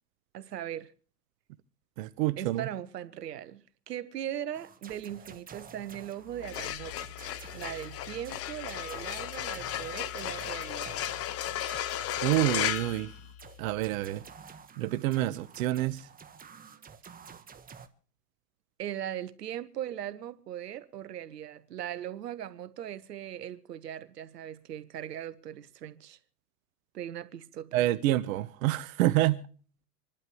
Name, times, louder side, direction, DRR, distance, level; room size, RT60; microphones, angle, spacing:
voice 1, 0.3-0.9 2.4-7.2 7.5-11.0 18.8-26.2 26.9-27.9, right 11 dB, 80° right, 1.3 m, -39 dB
voice 2, 2.0-2.7 11.6-13.1 13.6-14.2 14.8-16.1 27.7-29.4, right 15 dB, 55° right, 1.2 m, -28 dB
sound 1, 4.5-17.9, right 6 dB, 20° right, 1.4 m, -51 dB
sound 2, 6.3-13.8, left 12 dB, 30° left, 0.9 m, -35 dB
27.5 x 12.0 x 3.2 m
hypercardioid pair, 105°, 47 cm